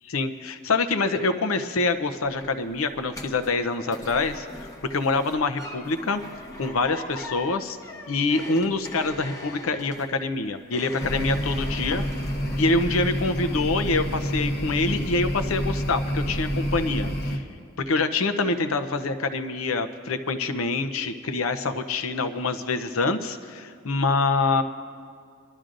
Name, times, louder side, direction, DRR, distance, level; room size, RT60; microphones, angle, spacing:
voice 1, 0.0-6.2 6.6-7.8 8.1-12.0 12.6-17.5 17.8-24.6, left 3 dB, 70° left, 9 dB, 0.7 m, -25 dB
sound 1, 2.0-13.5 13.8-14.4 14.8-14.9, left 2 dB, 15° left, 0.9 m, -42 dB
sound 2, 11.0-17.4, equal, 50° left, 1.0 m, -28 dB
25.5 x 12.5 x 2.6 m, 2.2 s
head